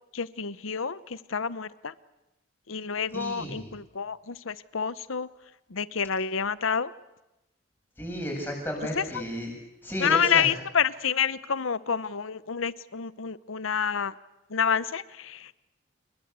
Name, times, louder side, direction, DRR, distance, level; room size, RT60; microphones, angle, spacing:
voice 1, 0.1-1.9 2.7-5.3 5.7-6.9 9.0-9.2 10.0-14.1 14.5-15.6, left 7 dB, 80° left, 17 dB, 0.9 m, -28 dB
voice 2, 3.1-3.7 8.0-9.5 9.8-10.5, equal, 10° left, 0 dB, 7.6 m, -33 dB
27.0 x 21.5 x 8.3 m, 0.95 s
head